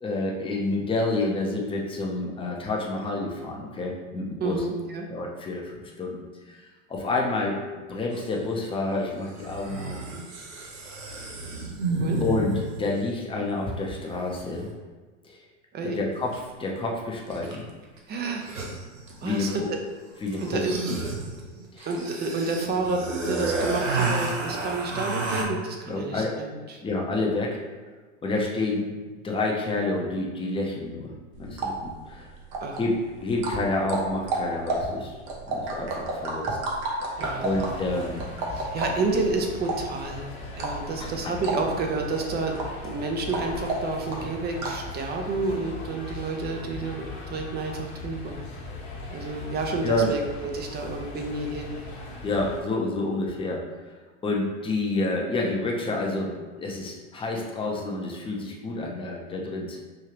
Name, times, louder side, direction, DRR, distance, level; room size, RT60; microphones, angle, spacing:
voice 1, 0.0-4.6 5.1-6.6 6.9-10.0 12.2-14.7 15.2-15.4 15.8-17.7 19.2-19.7 20.2-20.6 21.7-21.9 25.9-26.3 26.8-27.6 28.2-28.9 29.2-31.1 31.4-32.3 32.8-32.9 33.2-35.1 35.5-36.6 37.4-38.3 41.0-41.4 49.8-50.1 52.2-53.6 54.2-59.8, left 2 dB, 15° left, -1 dB, 0.8 m, -29 dB
voice 2, 4.4-5.1 12.0-12.2 15.7-16.0 18.1-18.5 19.2-19.6 20.4-20.8 21.9-26.8 32.6-32.8 37.2-37.5 38.5-40.3 40.5-42.6 42.8-48.4 49.1-51.8, right 3 dB, 25° right, 3 dB, 0.7 m, -30 dB
sound 1, 8.1-8.2 9.4-12.9 16.3-16.4 17.3-17.7 18.0-18.1 18.3-19.7 20.3-25.4, right 3 dB, 85° right, 0.9 m, -31 dB
sound 2, 31.3-44.9, right 2 dB, 45° right, 1.0 m, -33 dB
sound 3, 37.1-52.6, left 3 dB, 55° left, 1.3 m, -39 dB
5.0 x 2.7 x 3.0 m, 1.4 s
hypercardioid pair, 95°, 38 cm